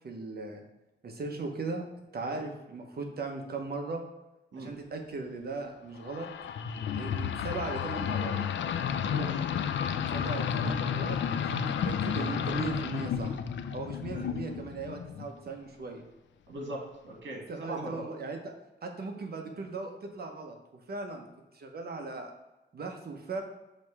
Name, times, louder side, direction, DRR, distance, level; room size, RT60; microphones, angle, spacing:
voice 1, 0.0-0.6 1.0-1.8 2.1-4.0 4.6-6.3 7.0-8.4 10.1-13.4 13.7-16.0 17.5-18.5 18.8-21.2 21.5-22.3 22.7-23.4, right 3 dB, 55° right, 3 dB, 0.9 m, -38 dB
sound 1, 6.0-15.4, left 7 dB, 80° left, 0.4 m, -32 dB
voice 2, 9.1-9.5 14.1-14.2 16.5-16.8 17.0-18.1, right 1 dB, 75° right, -1 dB, 1.8 m, -39 dB
6.4 x 3.2 x 4.8 m, 1.0 s
wide cardioid pair, 115°, 19 cm